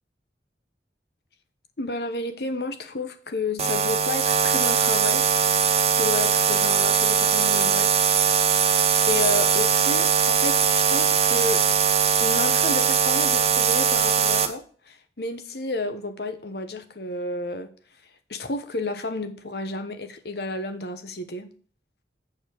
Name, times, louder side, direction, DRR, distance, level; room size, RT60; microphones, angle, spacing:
voice 1, 1.8-5.3 5.9-7.9 9.1-11.6 12.2-17.7 18.3-21.5, left 2 dB, 60° left, 8 dB, 1.0 m, -31 dB
sound 1, 3.6-14.5, right 7 dB, 35° right, 0.9 m, -21 dB
8.3 x 4.9 x 6.5 m, 0.42 s
head